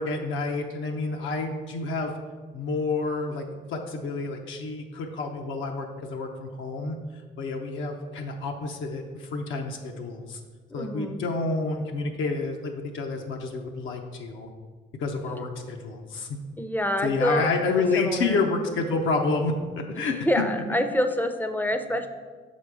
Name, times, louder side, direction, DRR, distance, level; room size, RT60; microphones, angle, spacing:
voice 1, 0.0-2.1 2.5-3.4 3.7-7.0 7.4-10.4 10.7-14.5 15.0-16.3 17.0-20.1, left 3 dB, 80° left, 2 dB, 0.7 m, -29 dB
voice 2, 10.7-11.2 16.6-17.5 18.0-18.4 20.2-22.1, left 1 dB, 10° left, 7 dB, 0.5 m, -26 dB
6.0 x 4.1 x 4.7 m, 1.5 s
cardioid pair, 90°, 20 cm